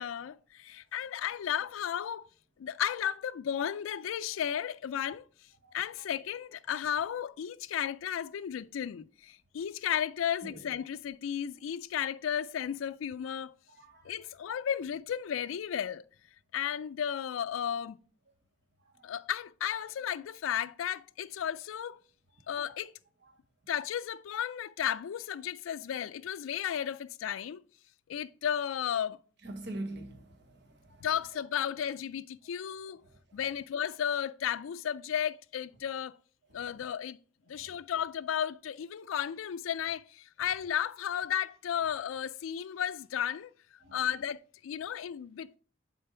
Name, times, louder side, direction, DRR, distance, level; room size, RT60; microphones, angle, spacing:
voice 1, 0.0-2.3 2.6-5.3 5.7-13.5 14.0-16.0 16.5-18.0 19.0-22.0 22.5-22.9 23.7-27.6 28.1-29.2 31.0-33.0 33.3-36.2 36.5-37.2 37.5-43.5 43.9-45.6, left 9 dB, 85° left, 0.3 m, -34 dB
voice 2, 29.4-31.1 33.0-33.4 37.5-37.8 43.8-44.0, right 1 dB, 60° right, 1.2 m, -44 dB
6.7 x 4.4 x 4.4 m
head